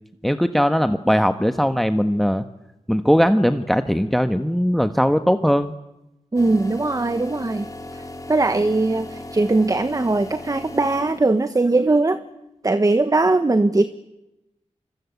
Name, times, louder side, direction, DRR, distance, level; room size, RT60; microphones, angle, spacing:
voice 1, 0.2-2.4 2.9-5.7, equal, ahead, 9 dB, 1.4 m, -19 dB
voice 2, 6.3-7.7 7.9-8.0 8.3-12.2 12.6-13.8, right 2 dB, 30° right, 10 dB, 1.5 m, -20 dB
sound 1, 6.4-11.5, left 2 dB, 30° left, 3.8 m, -37 dB
28.0 x 25.0 x 8.3 m, 0.90 s
cardioid pair, 65°, 12 cm